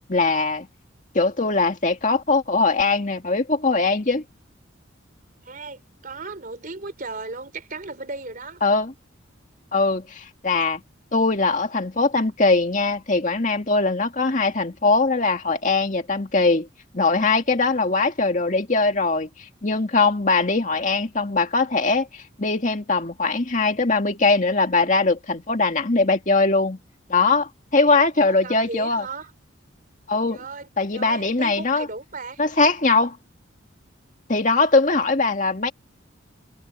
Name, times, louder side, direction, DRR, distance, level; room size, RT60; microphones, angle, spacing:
voice 1, 0.1-0.7 1.1-4.2 8.6-8.9 9.7-10.8 11.1-16.7 16.9-19.3 19.6-26.8 27.1-29.1 30.1-30.4 30.8-31.9 32.4-33.2 34.3-35.7, left 3 dB, 40° left, 2.1 m, -21 dB
voice 2, 5.4-8.6 17.4-17.6 28.1-29.3 30.3-32.4, right 3 dB, 45° right, 3.7 m, -36 dB
head